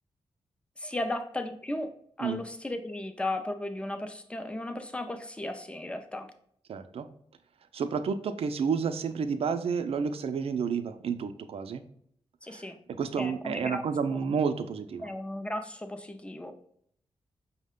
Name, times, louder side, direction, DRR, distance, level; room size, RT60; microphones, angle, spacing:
voice 1, 0.8-6.3 12.4-12.8 13.2-13.8 15.0-16.5, left 1 dB, 10° left, 7 dB, 0.4 m, -35 dB
voice 2, 6.7-7.1 7.7-11.8 12.5-12.6 13.0-15.1, right 6 dB, 65° right, 9 dB, 0.4 m, -30 dB
5.6 x 2.1 x 3.6 m, 0.66 s
wide cardioid pair, 135°, 11 cm